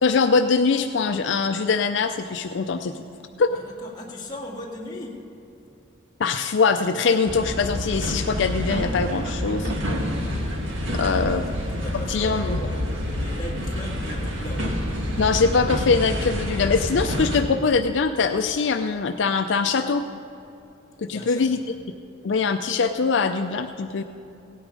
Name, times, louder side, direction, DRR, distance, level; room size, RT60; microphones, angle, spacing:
voice 1, 0.0-2.9 3.4-3.6 6.2-9.7 10.9-11.4 12.1-12.6 15.2-20.1 21.0-21.6 22.2-24.0, left 4 dB, 65° left, 7 dB, 0.4 m, -22 dB
voice 2, 3.5-5.3 11.1-14.7 21.1-21.7, left 1 dB, 20° left, -2 dB, 1.8 m, -38 dB
sound 1, 7.3-17.4, equal, 75° right, 1.6 m, -28 dB
17.0 x 9.5 x 5.2 m, 2.8 s
head